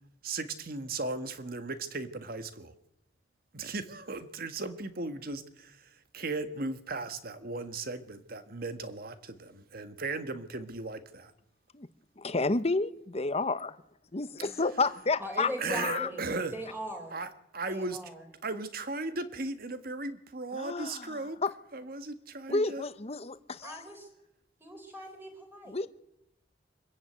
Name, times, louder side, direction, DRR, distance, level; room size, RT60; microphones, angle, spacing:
voice 1, 0.2-2.7 3.5-11.3 15.6-16.5 17.1-18.0 18.4-21.4 21.7-22.8, right 3 dB, 55° right, 11 dB, 1.6 m, -37 dB
voice 2, 12.2-13.8 14.1-16.1 20.5-21.5 22.5-23.8 25.7-25.9, left 3 dB, 35° left, 13 dB, 1.0 m, -31 dB
voice 3, 15.2-16.2 16.5-17.2 17.7-18.2 23.6-24.1 24.6-25.8, equal, 10° right, 3 dB, 4.8 m, -40 dB
25.5 x 14.5 x 9.3 m, 0.85 s
head